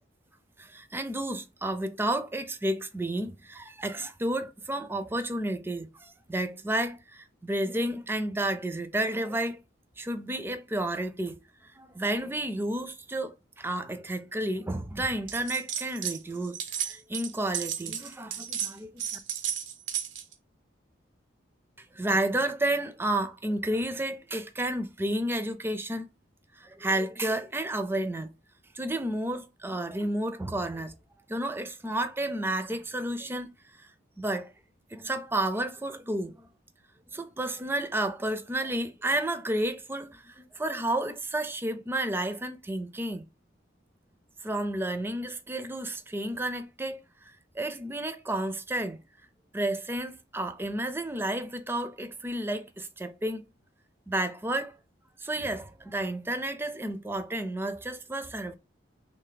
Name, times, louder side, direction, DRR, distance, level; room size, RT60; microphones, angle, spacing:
voice 1, 0.6-9.6 10.0-19.0 21.9-26.1 26.6-28.3 28.7-30.9 31.3-33.5 33.8-33.9 34.2-34.5 34.9-36.5 37.1-43.2 44.4-49.0 49.5-53.5 54.1-54.8 55.2-58.6, right 1 dB, 10° right, 0.4 m, -31 dB
sound 1, 15.3-16.2 16.4-20.3, right 9 dB, 90° right, 0.7 m, -34 dB
3.3 x 3.1 x 3.8 m
head